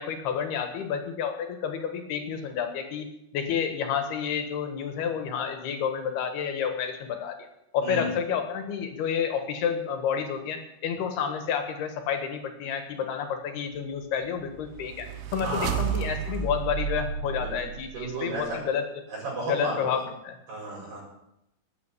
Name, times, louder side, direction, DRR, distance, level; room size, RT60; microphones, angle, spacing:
voice 1, 0.0-3.1 3.3-7.4 7.7-18.9 19.5-20.0 20.2-20.4, left 7 dB, 75° left, 6 dB, 3.6 m, -30 dB
sound 1, 14.1-18.4, right 8 dB, 90° right, 3.3 m, -32 dB
voice 2, 15.4-16.4 17.3-17.6 17.9-18.6 19.1-19.9 20.5-21.0, right 2 dB, 75° right, -4 dB, 7.4 m, -33 dB
13.5 x 9.2 x 8.4 m, 0.82 s
omnidirectional pair, 4.7 m